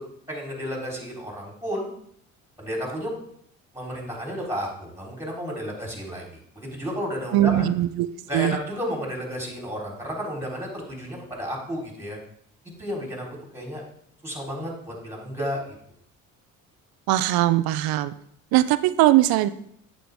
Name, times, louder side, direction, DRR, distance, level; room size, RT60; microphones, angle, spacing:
voice 1, 0.3-1.9 2.6-3.1 3.7-7.7 8.3-12.2 12.8-13.8 14.2-15.7, equal, 5° right, -2 dB, 3.9 m, -32 dB
voice 2, 7.3-8.1 8.3-8.6 17.1-18.1 18.5-19.5, right 14 dB, 65° right, 14 dB, 0.6 m, -20 dB
8.9 x 7.0 x 3.5 m, 0.68 s
hypercardioid pair, 60°, 40 cm